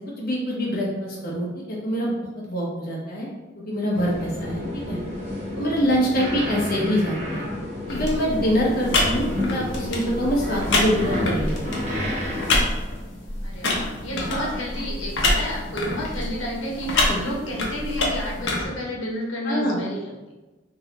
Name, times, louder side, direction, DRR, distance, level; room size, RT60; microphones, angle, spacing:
voice 1, 0.2-2.1 2.5-3.3 3.5-5.0 5.6-7.4 7.9-11.8 14.3-14.5 16.9-17.2 19.4-19.8, equal, 50° left, -4 dB, 1.1 m, -25 dB
sound 1, 3.9-12.6, left 1 dB, 35° right, 1.0 m, -30 dB
sound 2, 7.9-18.6, left 2 dB, 65° left, 0.8 m, -27 dB
voice 2, 13.4-20.2, equal, 85° left, -2 dB, 1.0 m, -31 dB
3.7 x 2.9 x 3.3 m, 1.2 s
head